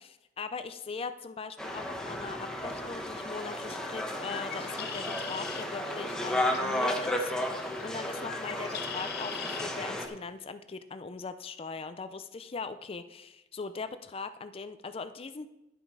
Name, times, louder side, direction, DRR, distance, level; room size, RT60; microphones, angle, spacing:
voice 1, 0.0-7.3 7.8-15.5, left 4 dB, 30° left, 11 dB, 0.4 m, -40 dB
sound 1, 1.6-10.1, left 1 dB, 5° left, 1.0 m, -33 dB
Bird, 4.2-9.7, left 8 dB, 60° left, 0.9 m, -43 dB
11.0 x 7.3 x 4.7 m, 0.96 s
head